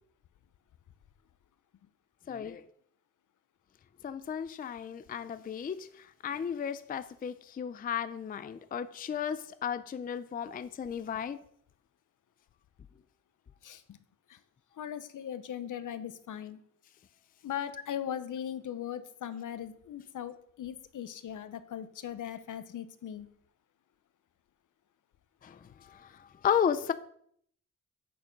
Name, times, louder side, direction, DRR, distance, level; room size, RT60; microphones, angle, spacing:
voice 1, 2.3-2.6 4.0-5.9 6.2-11.4 25.4-26.9, left 8 dB, 30° left, 13 dB, 0.4 m, -34 dB
voice 2, 13.6-14.0 14.3-14.4 14.8-16.6 17.4-23.3, left 9 dB, 70° left, 13 dB, 0.8 m, -39 dB
8.6 x 6.9 x 5.1 m, 0.64 s
wide cardioid pair, 155°, 32 cm